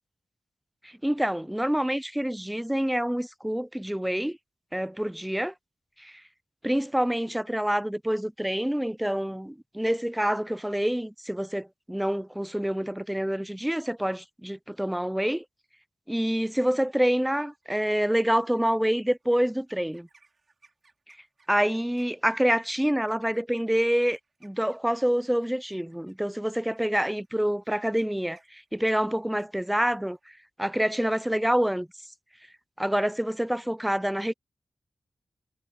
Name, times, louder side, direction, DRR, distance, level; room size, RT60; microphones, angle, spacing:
voice 1, 0.8-4.4 4.7-5.5 6.0-6.2 6.6-15.4 16.1-20.1 21.5-30.2 30.6-31.9 32.8-34.3, equal, 5° right, 0.5 m, -27 dB
sound 1, 16.3-17.0 17.4-17.8 18.3-30.3, right 3 dB, 50° right, 5.2 m, -63 dB
wide cardioid pair, 90°, 0 cm